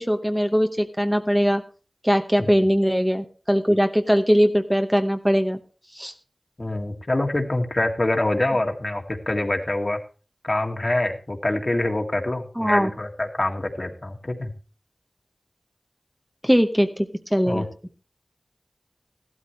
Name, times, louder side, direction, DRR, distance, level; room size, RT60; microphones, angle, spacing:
voice 1, 0.0-1.6 2.0-5.6 5.9-6.1 12.6-12.9 16.4-17.7, equal, 5° right, 6 dB, 0.8 m, -21 dB
voice 2, 6.6-10.0 10.4-14.5 17.5-17.7, left 1 dB, 50° left, 3 dB, 2.0 m, -25 dB
14.5 x 12.5 x 3.2 m, 0.36 s
wide cardioid pair, 45°, 0 cm